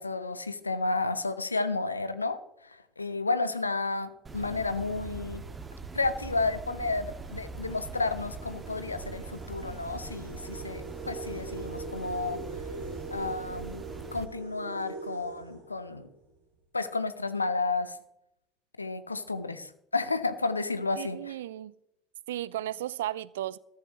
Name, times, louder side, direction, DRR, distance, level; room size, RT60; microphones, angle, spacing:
voice 1, 0.0-5.4 5.9-12.4 13.1-13.8 14.1-16.1 16.7-18.0 18.8-21.3, left 3 dB, 90° left, 0.7 m, -32 dB
sound 1, 4.2-14.3, right 4 dB, 25° right, 1.9 m, -42 dB
sound 2, 6.8-16.3, right 3 dB, 90° right, 3.1 m, -43 dB
voice 2, 21.0-21.7 22.3-23.6, right 13 dB, 75° right, 0.4 m, -34 dB
14.5 x 14.0 x 3.0 m
figure-of-eight pair, 60°, 0 cm